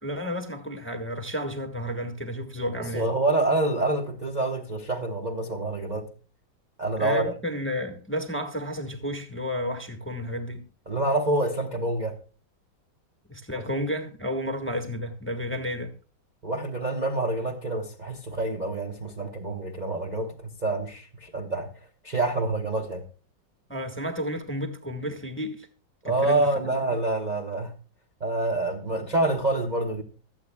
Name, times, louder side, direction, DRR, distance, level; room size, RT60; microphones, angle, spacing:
voice 1, 0.0-3.1 7.0-10.7 13.3-15.9 23.7-25.7 26.0-26.7, equal, 5° left, 1.3 m, -32 dB
voice 2, 2.8-6.1 6.8-7.3 10.9-12.2 13.5-13.6 16.4-21.7 22.0-23.0 26.0-27.7 28.2-30.0, right 2 dB, 30° right, 1.0 m, -27 dB
25.0 x 8.5 x 2.3 m
omnidirectional pair, 2.0 m